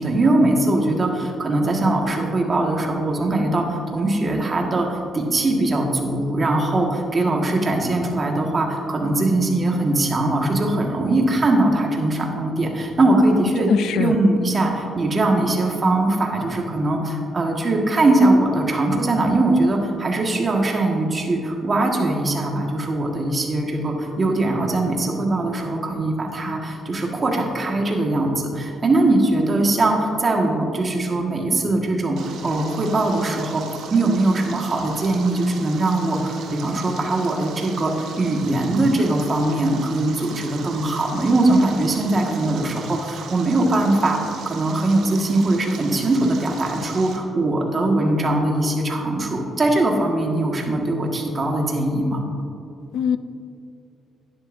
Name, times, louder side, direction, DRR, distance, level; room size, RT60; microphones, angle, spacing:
voice 1, 0.0-33.6 33.9-52.2, right 2 dB, 35° right, 1 dB, 1.6 m, -21 dB
voice 2, 13.7-14.1 52.9-53.2, left 8 dB, 80° left, 13 dB, 0.4 m, -21 dB
Stream, 32.2-47.2, right 6 dB, 75° right, 1.0 m, -39 dB
11.0 x 10.0 x 2.6 m, 2.6 s
cardioid pair, 90°, 0 cm